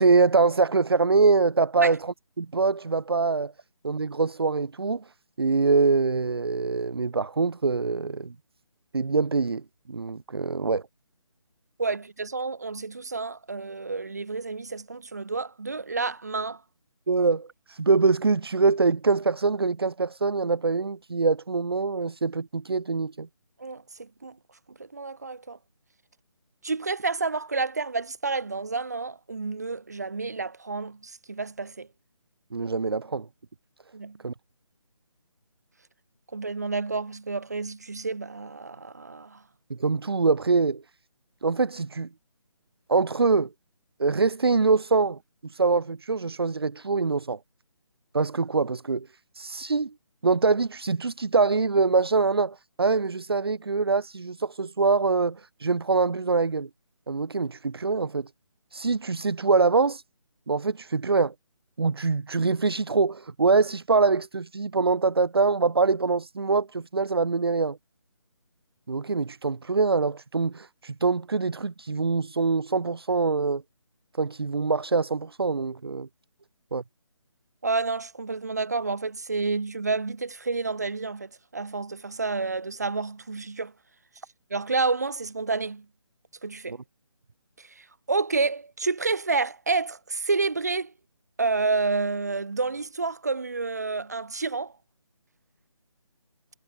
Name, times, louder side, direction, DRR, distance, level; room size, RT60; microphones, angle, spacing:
voice 1, 0.0-3.5 3.8-5.0 5.4-8.3 8.9-9.6 9.9-10.8 17.1-23.3 32.5-33.3 34.2-34.3 39.7-40.8 41.4-42.1 42.9-43.5 44.0-47.4 48.1-49.1 49.3-49.9 50.2-56.7 57.1-58.3 58.7-60.0 60.5-61.3 61.8-67.8 68.9-73.6 74.2-76.1 76.7-76.8 86.7-86.8, right 4 dB, 45° right, 0.4 m, -24 dB
voice 2, 11.8-16.6 23.6-24.3 24.9-25.6 26.6-31.9 33.9-34.2 36.3-39.4 77.6-83.7 84.5-85.8 86.4-86.8 87.6-90.9 91.4-94.7, right 3 dB, 30° right, 0.9 m, -29 dB
hypercardioid pair, 180°, 17 cm